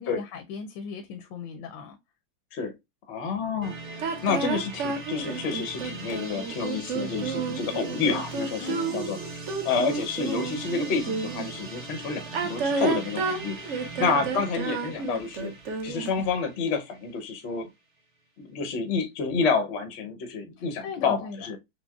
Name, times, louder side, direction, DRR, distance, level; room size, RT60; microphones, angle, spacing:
voice 1, 0.0-2.0 8.6-9.0 14.0-14.3 20.8-21.5, left 6 dB, 85° left, 1.3 m, -37 dB
voice 2, 3.1-9.2 9.6-15.5 15.8-17.7 18.4-21.6, left 5 dB, 60° left, 0.7 m, -29 dB
sound 1, 3.6-17.3, right 3 dB, 50° right, 2.9 m, -40 dB
sound 2, 4.0-11.5 12.2-16.2, right 4 dB, 70° right, 0.7 m, -31 dB
6.1 x 2.1 x 2.3 m
omnidirectional pair, 2.0 m